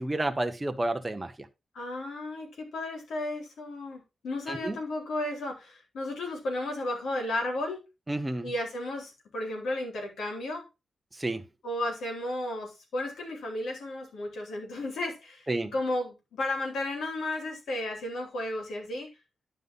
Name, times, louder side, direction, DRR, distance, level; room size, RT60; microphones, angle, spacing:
voice 1, 0.0-1.3 4.5-4.8 8.1-8.5 11.2-11.4 15.5-15.7, right 2 dB, 15° right, 1.0 m, -30 dB
voice 2, 1.7-7.8 8.4-10.7 11.6-19.1, left 1 dB, 90° left, 4.1 m, -33 dB
11.5 x 5.5 x 3.8 m
wide cardioid pair, 180°, 0 cm